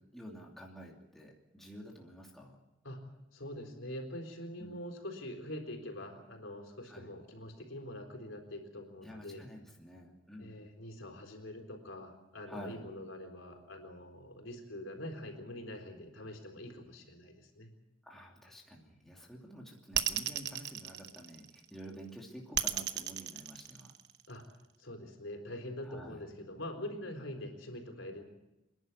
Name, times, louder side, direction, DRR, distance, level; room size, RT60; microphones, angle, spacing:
voice 1, 0.0-2.6 4.6-4.8 6.8-7.1 9.0-10.6 12.5-12.8 18.0-23.9 25.8-26.3, equal, ahead, -2 dB, 2.8 m, -50 dB
voice 2, 3.3-9.4 10.4-17.7 24.3-24.5 24.8-28.2, left 1 dB, 75° left, 4 dB, 4.0 m, -44 dB
sound 1, 19.9-21.7 22.5-24.3, right 11 dB, 55° right, 1.0 m, -34 dB
27.5 x 11.0 x 9.6 m, 0.95 s
head